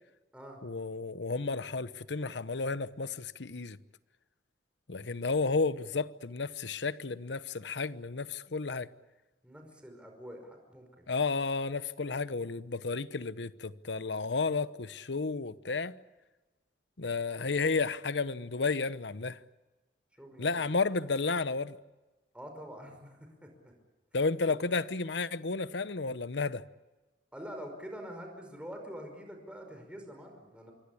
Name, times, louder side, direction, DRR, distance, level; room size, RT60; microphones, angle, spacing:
voice 1, 0.6-3.8 4.9-8.9 11.1-15.9 17.0-19.4 20.4-21.8 24.1-26.6, left 4 dB, 80° left, 0.9 m, -32 dB
voice 2, 5.0-5.4 9.4-11.1 17.4-17.5 20.2-20.6 22.3-23.7 27.3-30.7, equal, 5° right, 5.4 m, -46 dB
26.5 x 23.5 x 8.6 m
head